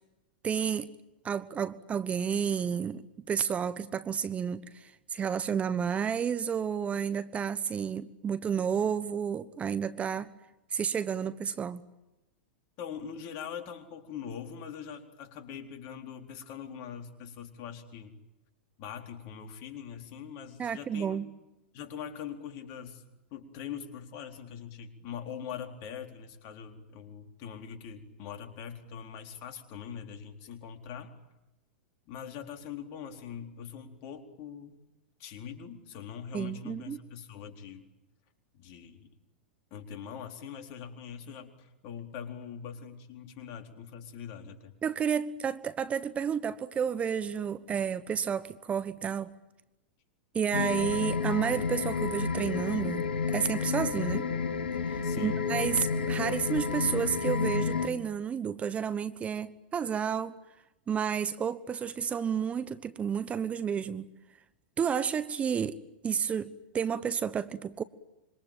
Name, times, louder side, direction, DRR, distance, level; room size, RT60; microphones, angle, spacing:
voice 1, 0.4-0.9 1.2-10.3 10.7-11.8 20.6-21.3 36.3-37.0 44.8-49.3 50.3-54.3 54.9-60.4 60.9-64.1 64.8-65.8 66.0-67.8, right 7 dB, 25° right, 14 dB, 1.2 m, -31 dB
voice 2, 12.8-18.1 18.8-21.2 21.7-23.0 23.3-31.1 32.1-34.8 35.2-37.9 38.5-39.1 39.7-44.8 55.0-55.4, left 8 dB, 50° left, 5 dB, 4.2 m, -42 dB
sound 1, 50.5-57.9, left 5 dB, 80° left, 2.5 m, -30 dB
26.5 x 24.0 x 9.1 m, 0.96 s
hypercardioid pair, 105°, 6 cm